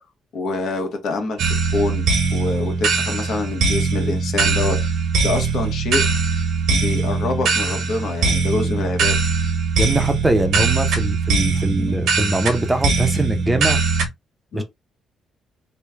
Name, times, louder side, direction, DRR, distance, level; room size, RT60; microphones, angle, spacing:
voice 1, 0.3-1.5 1.7-4.9 5.2-6.0 6.7-9.2 11.7-12.0 14.5-14.6, left 3 dB, 70° left, 1.1 m, -26 dB
sound 1, 1.4-14.1, right 4 dB, 75° right, 1.2 m, -21 dB
voice 2, 9.8-13.8 14.5-14.6, right 1 dB, 15° right, 0.7 m, -22 dB
3.2 x 2.2 x 3.3 m
cardioid pair, 90°, 0 cm